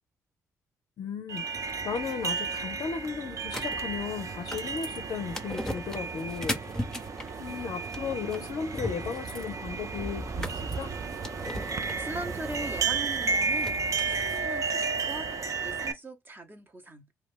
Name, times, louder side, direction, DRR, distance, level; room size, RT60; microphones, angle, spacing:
voice 1, 1.0-6.6 7.4-10.9, left 6 dB, 55° left, 0.5 m, -35 dB
sound 1, 1.3-15.9, right 5 dB, 45° right, 0.5 m, -33 dB
sound 2, 3.5-14.5, left 1 dB, 5° left, 0.7 m, -39 dB
voice 2, 12.0-13.8 14.1-15.3 15.6-17.1, right 1 dB, 25° right, 0.9 m, -40 dB
2.3 x 2.2 x 3.4 m
hypercardioid pair, 40°, 8 cm